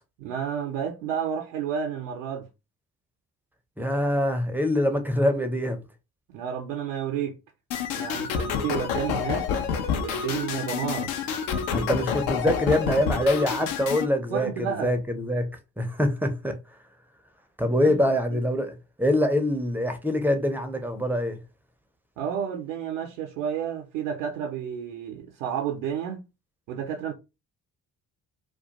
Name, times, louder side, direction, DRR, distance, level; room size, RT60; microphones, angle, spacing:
voice 1, 0.2-2.4 6.3-7.3 8.0-9.5 10.0-11.1 14.3-14.9 17.8-18.4 22.2-26.2 26.7-27.1, right 8 dB, 80° right, 0.6 m, -31 dB
voice 2, 3.8-5.8 11.7-15.5 15.8-16.6 17.6-21.4, left 1 dB, 5° right, 0.4 m, -24 dB
sound 1, 7.7-14.1, left 7 dB, 75° left, 0.6 m, -28 dB
2.3 x 2.2 x 2.7 m
hypercardioid pair, 45°, 49 cm